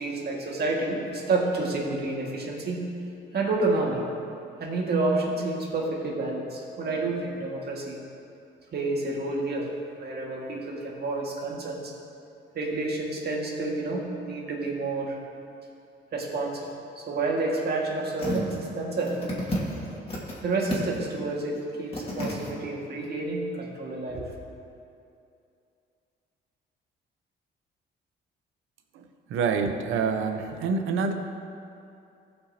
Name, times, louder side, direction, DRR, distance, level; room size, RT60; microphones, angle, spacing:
voice 1, 0.0-2.9 3.3-4.0 4.6-8.0 8.7-9.7 10.0-11.9 12.6-15.2 16.1-16.7 17.0-19.3 20.4-24.3, right 3 dB, 55° right, -2 dB, 1.9 m, -29 dB
sound 1, 18.2-18.6 19.0-20.4 20.7-21.2 21.5-21.6 21.9-22.5 23.0-23.1, equal, 30° left, 2.1 m, -31 dB
voice 2, 29.3-31.1, right 5 dB, 85° right, 6 dB, 0.7 m, -26 dB
16.0 x 5.5 x 2.8 m, 2.6 s
cardioid pair, 90°, 20 cm